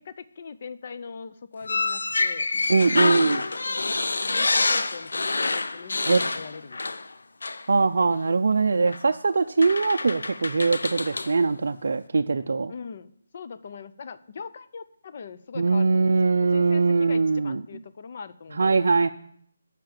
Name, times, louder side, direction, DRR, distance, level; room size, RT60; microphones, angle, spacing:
voice 1, 0.0-2.5 3.2-7.0 12.7-13.1 13.3-16.2 16.4-19.1, left 5 dB, 35° left, 12 dB, 0.5 m, -41 dB
sound 1, 1.6-7.1 7.4-7.6 8.9-9.0 9.6-11.3, left 3 dB, 85° left, 0.6 m, -27 dB
voice 2, 2.7-3.4 6.1-6.2 7.7-12.7 15.6-17.6 18.5-19.1, right 4 dB, 60° right, 5 dB, 0.4 m, -22 dB
10.0 x 5.8 x 7.3 m, 0.64 s
hypercardioid pair, 175°, 0 cm